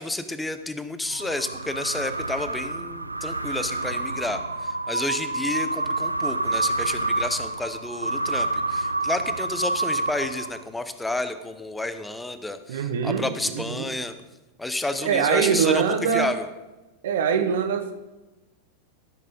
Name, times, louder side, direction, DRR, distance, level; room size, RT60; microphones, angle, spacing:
voice 1, 0.0-14.1 14.6-16.5, left 2 dB, 5° left, 11 dB, 0.8 m, -30 dB
sound 1, 1.1-10.8, right 2 dB, 85° right, 0.5 m, -28 dB
voice 2, 12.7-13.2 13.5-13.9 15.0-16.3 17.0-17.9, right 7 dB, 60° right, 7 dB, 1.1 m, -23 dB
13.5 x 6.7 x 5.3 m, 1.1 s
figure-of-eight pair, 90°, 0 cm